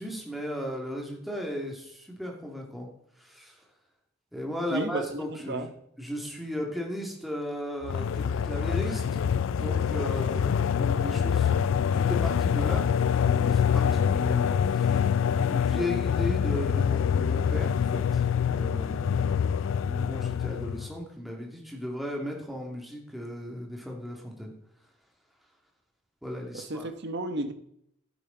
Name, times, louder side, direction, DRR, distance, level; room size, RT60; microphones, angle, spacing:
voice 1, 0.0-2.9 3.2-3.6 4.3-5.7 6.0-9.0 9.4-11.7 11.9-19.4 19.7-24.5 26.2-26.9, left 1 dB, ahead, -1 dB, 2.4 m, -36 dB
voice 2, 4.7-5.7 26.5-27.5, right 2 dB, 60° right, 8 dB, 1.1 m, -33 dB
sound 1, 7.8-20.9, left 7 dB, 70° left, 0.3 m, -25 dB
12.0 x 9.5 x 4.0 m, 0.73 s
head